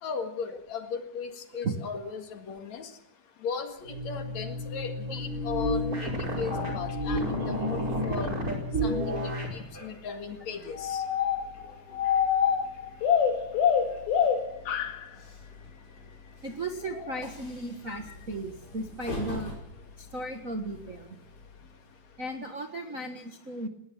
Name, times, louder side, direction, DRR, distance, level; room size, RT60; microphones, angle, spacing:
voice 1, 0.0-2.9 3.4-6.1 6.4-8.4 8.8-11.0, left 5 dB, 55° left, 7 dB, 2.8 m, -37 dB
sound 1, 3.9-9.6, equal, 25° right, 5.0 m, -31 dB
Train, 5.0-22.3, left 3 dB, 25° left, 5.8 m, -46 dB
sound 2, 10.8-11.7 11.9-15.0 16.9-17.3 17.9-18.1, left 8 dB, 90° left, 3.5 m, -26 dB
voice 2, 16.4-19.5 20.0-21.1 22.2-23.7, right 2 dB, 65° right, 4 dB, 0.8 m, -36 dB
19.0 x 19.0 x 7.3 m, 0.70 s
omnidirectional pair, 4.2 m